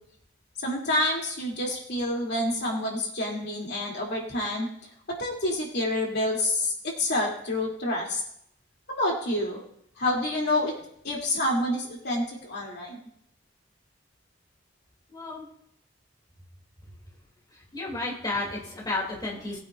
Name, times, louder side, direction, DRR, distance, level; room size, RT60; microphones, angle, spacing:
voice 1, 0.6-4.7 5.2-8.2 8.9-9.6 10.0-10.7 11.0-13.0, left 1 dB, 60° left, -2 dB, 2.8 m, -28 dB
voice 2, 15.1-15.5 17.7-19.6, left 2 dB, 20° left, -3 dB, 2.8 m, -32 dB
20.0 x 8.9 x 2.5 m, 0.72 s
head